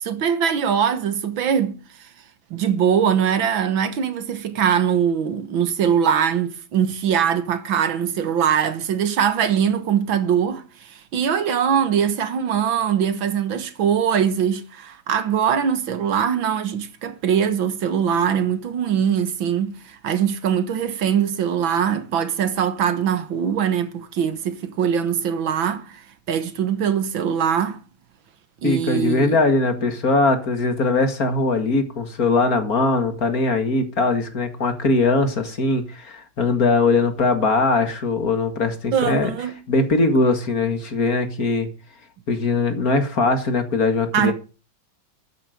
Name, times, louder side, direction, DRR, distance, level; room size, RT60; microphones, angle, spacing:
voice 1, 0.0-2.1 2.5-27.8 28.6-29.4 38.9-39.6 44.1-44.3, right 8 dB, 85° right, 2.1 m, -22 dB
voice 2, 28.6-39.3 39.7-41.7 42.3-44.3, left 3 dB, 50° left, 2.4 m, -20 dB
12.5 x 9.5 x 5.2 m
omnidirectional pair, 2.1 m